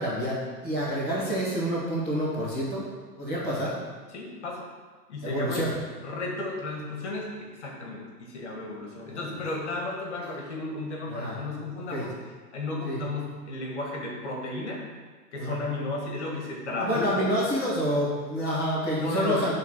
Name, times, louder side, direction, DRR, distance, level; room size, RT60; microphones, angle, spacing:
voice 1, 0.0-2.8 3.2-3.7 5.2-5.7 8.9-9.4 11.1-11.4 11.9-12.1 12.8-13.0 15.4-15.6 16.8-19.5, equal, 10° right, -12 dB, 0.9 m, -28 dB
voice 2, 4.1-4.7 5.1-5.7 6.0-12.1 12.5-14.8 15.3-17.3 19.0-19.5, left 2 dB, 45° left, -1 dB, 1.8 m, -33 dB
8.1 x 3.9 x 6.0 m, 1.4 s
hypercardioid pair, 165°, 50 cm